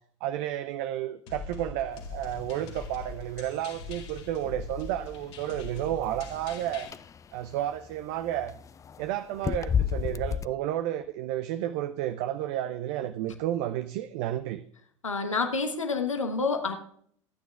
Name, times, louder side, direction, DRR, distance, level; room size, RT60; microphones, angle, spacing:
voice 1, 0.2-6.9 7.3-8.5 9.0-14.6, right 12 dB, 55° right, 11 dB, 0.6 m, -31 dB
sound 1, 1.3-6.9, left 4 dB, 65° left, 2.0 m, -42 dB
sound 2, 2.0-10.5, left 8 dB, 20° left, 0.4 m, -35 dB
voice 2, 15.0-16.8, left 4 dB, 85° left, 6 dB, 1.1 m, -28 dB
25.0 x 9.2 x 2.3 m, 0.63 s
figure-of-eight pair, 75°, 16 cm